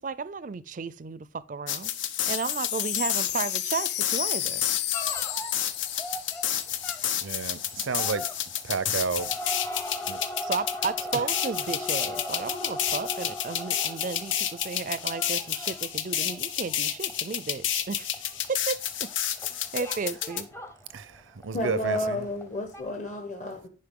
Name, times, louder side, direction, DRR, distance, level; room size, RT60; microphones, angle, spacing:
voice 1, 0.0-1.9 2.3-4.6 10.4-18.2 18.5-19.1 19.5-20.5, right 4 dB, 40° right, 0.4 m, -34 dB
sound 1, 1.7-20.4, left 10 dB, 80° left, 0.8 m, -30 dB
Wind chime, 1.9-7.1 7.4-7.5 7.7-8.1, left 14 dB, 60° left, 0.4 m, -33 dB
sound 2, 4.9-21.6 21.9-22.5 22.7-22.8, left 1 dB, 15° left, 0.7 m, -39 dB
voice 2, 7.2-8.3 8.6-9.3 10.1-10.2 20.9-22.2, right 5 dB, 85° right, 0.6 m, -31 dB
voice 3, 21.5-23.7, left 1 dB, 40° left, 1.1 m, -31 dB
10.5 x 5.2 x 3.7 m
head